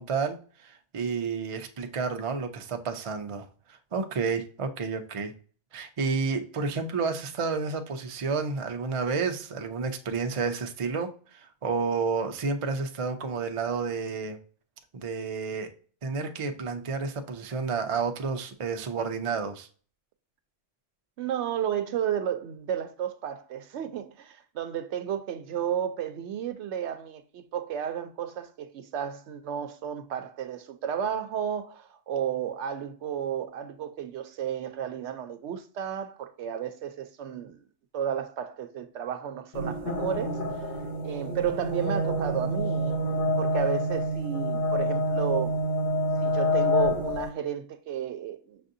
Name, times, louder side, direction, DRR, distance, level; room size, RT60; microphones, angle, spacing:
voice 1, 0.0-3.5 3.9-5.3 5.7-14.4 14.9-15.7 16.0-19.7, right 4 dB, 50° right, 0.4 m, -30 dB
voice 2, 21.2-37.6 37.9-40.4 41.0-43.0 43.4-45.6 46.2-48.6, right 9 dB, 70° right, 0.8 m, -32 dB
sound 1, 39.5-47.3, left 1 dB, 45° left, 1.0 m, -27 dB
5.9 x 2.6 x 2.5 m
omnidirectional pair, 1.2 m